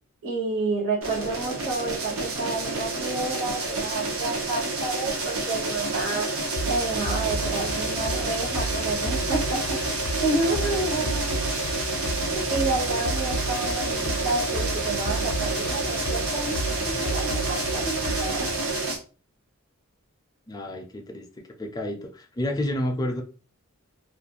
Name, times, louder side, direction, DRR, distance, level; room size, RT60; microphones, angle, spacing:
voice 1, 0.2-6.3 6.6-9.8 10.2-11.4 12.3-16.5 16.8-18.5, right 2 dB, 60° right, -7 dB, 0.9 m, -29 dB
sound 1, 1.0-19.0, right 2 dB, 85° right, 0.7 m, -29 dB
sound 2, 6.6-18.6, equal, 75° left, 0.5 m, -32 dB
voice 2, 20.5-21.3 21.6-23.2, left 1 dB, 20° left, 3 dB, 0.4 m, -30 dB
2.4 x 2.1 x 2.8 m, 0.35 s
head